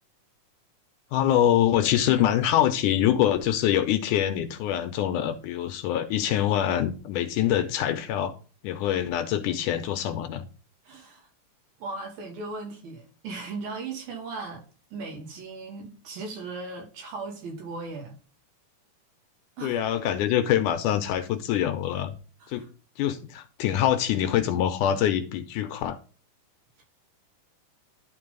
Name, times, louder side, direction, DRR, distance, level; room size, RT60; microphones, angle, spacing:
voice 1, 1.1-8.4 8.6-10.5 19.6-22.1 22.5-22.7 23.0-26.0, left 11 dB, 80° left, 2.0 m, -24 dB
voice 2, 10.8-11.3 11.8-14.6 14.9-18.2 19.6-19.8 22.4-22.7 26.8-26.9, right 3 dB, 90° right, 4.2 m, -37 dB
11.0 x 3.9 x 3.8 m
omnidirectional pair, 4.0 m